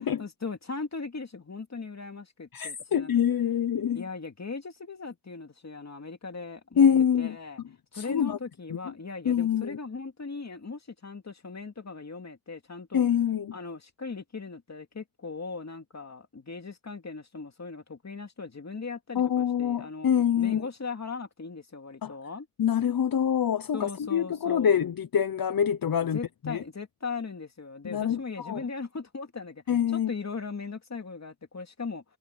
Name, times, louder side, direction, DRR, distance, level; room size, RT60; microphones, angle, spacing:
voice 1, 0.2-3.1 3.9-6.9 7.2-7.6 7.9-13.0 13.5-20.1 20.4-22.5 23.7-24.9 26.1-29.6 29.9-32.0, left 4 dB, 50° left, 2.6 m, -38 dB
voice 2, 2.5-4.0 6.8-7.4 7.9-8.4 8.7-8.9 9.2-9.8 12.9-13.5 19.1-20.6 22.0-22.1 22.6-26.2 26.4-26.6 27.8-28.7 29.7-30.1, left 8 dB, 75° left, 0.9 m, -25 dB
wide cardioid pair, 75°, 36 cm